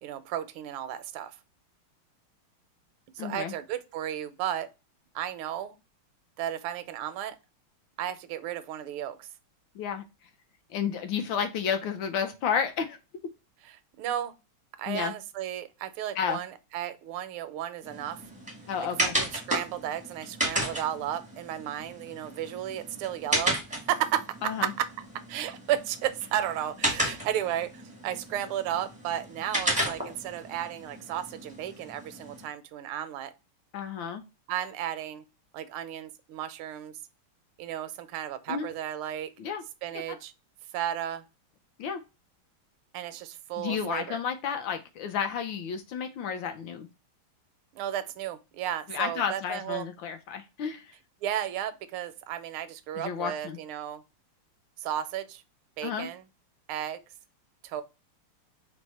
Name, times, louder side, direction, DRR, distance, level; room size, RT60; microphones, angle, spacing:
voice 1, 0.0-1.4 3.1-4.7 5.1-5.8 6.4-7.4 8.0-9.3 14.0-14.3 14.8-18.2 19.0-23.6 23.9-24.9 25.3-33.3 34.5-35.2 35.5-36.9 37.6-39.3 39.8-40.3 40.7-41.2 42.9-44.2 47.7-49.9 51.2-54.0 54.8-55.4 55.8-56.2 56.7-57.0 57.6-57.8, right 11 dB, 80° right, 1.4 m, -33 dB
voice 2, 3.2-3.5 9.7-10.0 10.7-13.0 14.9-15.1 16.2-16.4 18.7-19.1 24.4-24.7 33.7-34.2 38.5-38.7 39.4-39.6 40.1-40.2 41.8-42.0 43.6-46.9 48.9-50.9 53.0-53.6 55.8-56.1, left 7 dB, 75° left, 1.2 m, -31 dB
sound 1, 17.8-32.5, right 1 dB, 10° right, 0.4 m, -34 dB
4.6 x 2.1 x 4.0 m
omnidirectional pair, 2.4 m